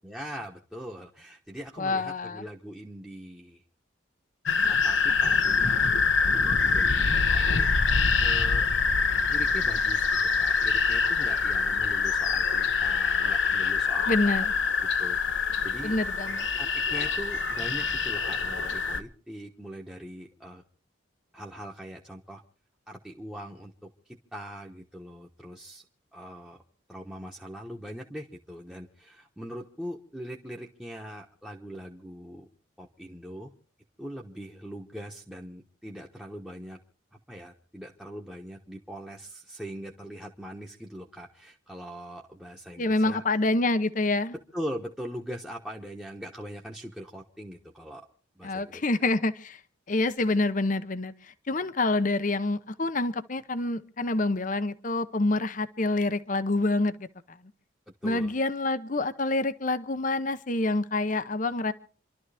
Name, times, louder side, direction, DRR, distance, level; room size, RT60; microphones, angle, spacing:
voice 1, 0.0-3.6 4.6-5.9 6.2-8.7 9.3-10.1 10.4-14.5 15.0-16.0 16.6-20.6 21.3-22.4 22.9-25.8 26.1-26.6 26.9-32.5 32.8-33.5 34.0-36.8 37.3-43.2 44.5-48.1 48.4-48.8 58.0-58.3, equal, 5° right, -2 dB, 1.2 m, -41 dB
voice 2, 1.8-2.4 14.1-14.4 15.8-16.4 42.8-44.3 48.4-49.6 49.9-57.4 58.0-61.7, left 2 dB, 40° left, 13 dB, 0.8 m, -27 dB
sound 1, 4.5-19.0, left 5 dB, 70° left, 1.0 m, -25 dB
28.5 x 12.5 x 3.5 m, 0.42 s
head